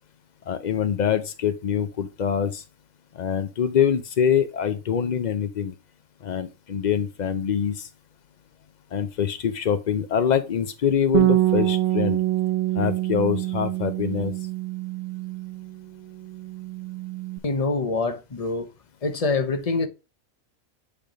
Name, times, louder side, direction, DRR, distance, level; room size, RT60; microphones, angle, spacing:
voice 1, 0.5-2.6 3.1-5.7 6.2-7.9 8.9-12.2 12.7-14.3, left 8 dB, 70° left, 0.4 m, -24 dB
Bass guitar, 11.1-15.8 16.1-17.4, right 16 dB, 75° right, 0.5 m, -25 dB
voice 2, 17.4-18.7 19.0-19.9, left 3 dB, 35° left, 0.7 m, -25 dB
8.6 x 3.5 x 5.1 m
omnidirectional pair, 1.5 m